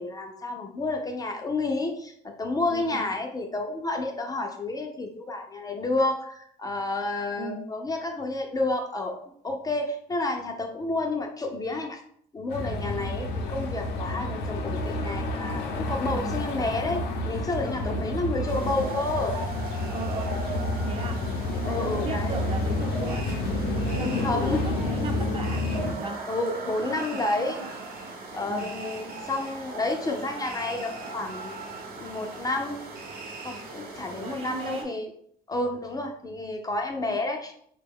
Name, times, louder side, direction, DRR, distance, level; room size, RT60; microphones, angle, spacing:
voice 1, 0.0-9.2 9.4-12.0 12.3-19.4 21.6-22.3 23.9-24.7 26.3-27.6 28.3-31.6 32.0-32.8 33.4-35.1 35.5-37.5, left 2 dB, 20° left, 3 dB, 0.4 m, -30 dB
voice 2, 2.7-3.1 7.4-7.7 16.1-16.4 17.8-18.0 19.9-20.3 20.8-21.2 21.6-23.6 23.9-25.7 26.0-26.3 26.8-27.7 28.5-28.7 34.1-34.9 37.0-37.2, right 3 dB, 35° right, 3 dB, 0.6 m, -37 dB
sound 1, 12.5-25.9, left 2 dB, 85° left, 0.6 m, -29 dB
sound 2, 18.5-34.8, right 3 dB, 65° right, 0.9 m, -39 dB
3.3 x 2.2 x 3.5 m, 0.65 s
cardioid pair, 110°, 17 cm